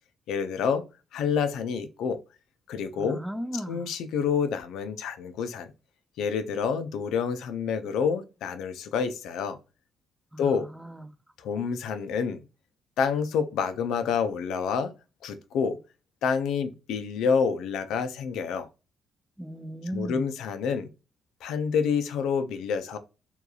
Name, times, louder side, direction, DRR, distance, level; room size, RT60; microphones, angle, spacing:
voice 1, 0.3-0.8 1.1-2.2 2.7-3.2 3.7-5.7 6.2-9.6 10.4-10.7 11.4-12.4 13.0-14.9 15.2-15.8 16.2-18.7 19.9-20.9 21.4-23.0, left 6 dB, 85° left, 0.4 m, -28 dB
voice 2, 3.0-3.9 10.3-11.1 19.4-20.3, equal, 5° right, 0.3 m, -36 dB
2.8 x 2.4 x 2.3 m
cardioid pair, 90°, 0 cm